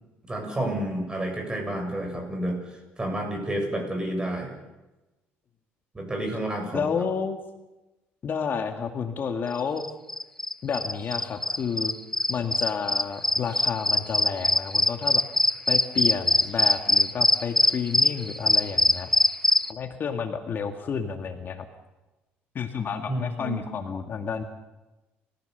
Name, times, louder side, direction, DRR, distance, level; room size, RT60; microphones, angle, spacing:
voice 1, 0.3-4.5 5.9-6.8 23.1-23.6, right 1 dB, 20° right, 4 dB, 7.5 m, -30 dB
voice 2, 6.7-7.4 8.2-9.8 10.6-12.0 12.3-15.2 15.7-19.1 19.7-21.7 22.5-24.4, left 6 dB, 45° left, 6 dB, 2.0 m, -30 dB
sound 1, 9.8-19.7, left 1 dB, 5° left, 0.6 m, -22 dB
29.5 x 15.5 x 6.9 m, 1.1 s
cardioid pair, 95°, 5 cm